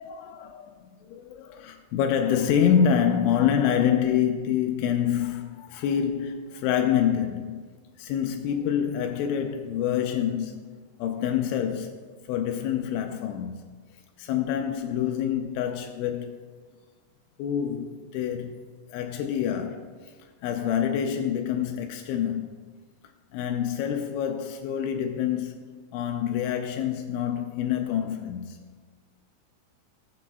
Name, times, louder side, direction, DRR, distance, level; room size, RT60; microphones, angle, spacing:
voice 1, 0.0-7.6 8.0-10.7 11.0-13.6 14.2-16.4 17.4-20.1 20.4-22.5 23.3-28.6, left 9 dB, 85° left, 2.7 m, -27 dB
20.5 x 7.6 x 2.3 m
omnidirectional pair, 5.8 m